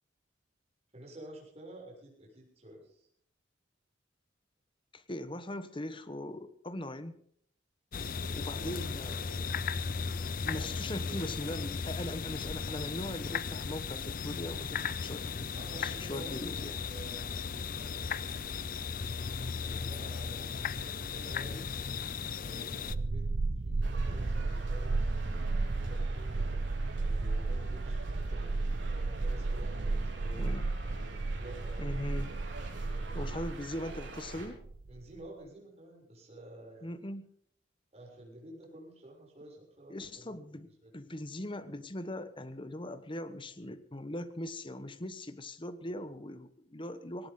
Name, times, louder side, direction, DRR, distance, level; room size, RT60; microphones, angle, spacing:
voice 1, 0.9-3.1 7.9-9.6 10.4-11.4 15.5-18.3 19.5-21.6 22.3-23.2 23.6-25.1 25.8-26.5 27.0-28.6 29.1-30.5 31.3-32.2 32.6-33.1 34.9-37.0 37.9-41.0, right 1 dB, 35° right, -2 dB, 6.8 m, -51 dB
voice 2, 4.9-7.2 8.3-9.2 10.4-16.9 30.4-30.7 31.8-32.3 33.1-34.6 36.8-37.3 39.9-40.7 40.9-47.3, left 1 dB, 25° left, 12 dB, 1.1 m, -40 dB
sound 1, 7.9-22.9, left 5 dB, 50° left, 0.6 m, -36 dB
sound 2, 22.9-35.1, right 3 dB, 50° right, 0.5 m, -33 dB
sound 3, 23.8-34.5, right 2 dB, 75° right, 4.7 m, -46 dB
18.5 x 18.0 x 3.8 m, 0.64 s
head